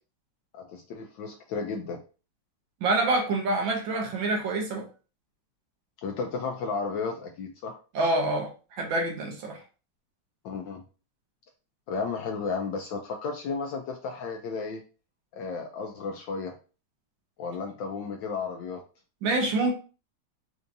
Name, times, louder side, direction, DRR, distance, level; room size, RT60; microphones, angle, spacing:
voice 1, 0.5-2.0 6.0-7.8 10.4-10.8 11.9-14.8 15.3-16.6 17.4-18.8, left 4 dB, 75° left, 2 dB, 1.1 m, -33 dB
voice 2, 2.8-4.8 7.9-9.6 19.2-19.7, right 2 dB, 70° right, 1 dB, 1.5 m, -26 dB
4.5 x 2.7 x 2.6 m, 0.35 s
omnidirectional pair, 2.3 m